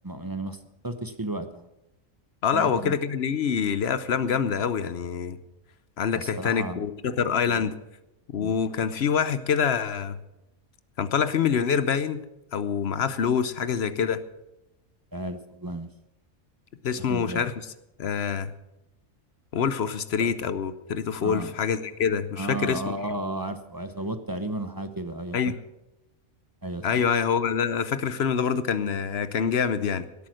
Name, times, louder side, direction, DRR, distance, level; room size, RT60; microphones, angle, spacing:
voice 1, 0.0-0.6 0.8-1.7 2.5-3.0 6.1-6.8 7.5-7.7 8.4-8.5 15.1-15.9 17.0-17.5 21.2-21.5 22.4-25.5 26.6-27.0, right 1 dB, 20° right, 9 dB, 0.6 m, -33 dB
voice 2, 2.4-5.4 6.0-7.7 8.3-10.2 11.0-12.2 12.5-14.2 16.8-17.5 18.0-18.5 19.5-22.9 25.3-25.6 26.8-30.1, left 7 dB, 60° left, 14 dB, 0.9 m, -26 dB
17.0 x 8.7 x 6.4 m, 0.93 s
omnidirectional pair, 1.4 m